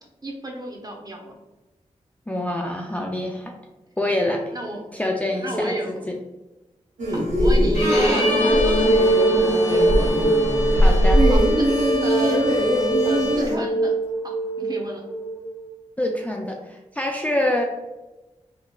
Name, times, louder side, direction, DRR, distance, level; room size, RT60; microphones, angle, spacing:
voice 1, 0.2-1.4 4.5-4.9 5.3-6.1 7.0-10.4 11.3-11.7 12.0-12.5 13.0-14.0 14.2-15.0, right 1 dB, 30° right, 0 dB, 0.8 m, -32 dB
voice 2, 2.3-3.5 4.0-4.4 4.9-5.7 6.1-6.2 10.7-11.3 16.0-17.6, left 1 dB, 10° left, 1 dB, 0.4 m, -25 dB
sound 1, 7.0-13.6, equal, 75° right, 0.8 m, -21 dB
Bowed string instrument, 7.7-13.6, left 2 dB, 65° left, 1.2 m, -29 dB
sound 2, 8.0-15.7, right 1 dB, 35° left, 1.1 m, -23 dB
3.9 x 2.3 x 2.2 m, 1.1 s
cardioid pair, 50°, 13 cm